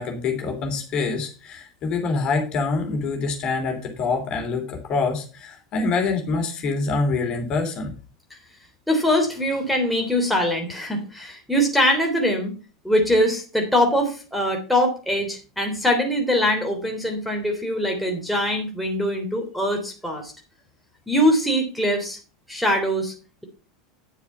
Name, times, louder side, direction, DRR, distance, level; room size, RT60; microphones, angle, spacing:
voice 1, 0.0-7.9, left 4 dB, 40° left, 3 dB, 3.2 m, -25 dB
voice 2, 8.9-12.6 12.8-20.3 21.1-22.2 22.5-23.1, equal, ahead, 1 dB, 3.3 m, -22 dB
10.0 x 7.1 x 5.6 m, 0.35 s
figure-of-eight pair, 80°, 2 cm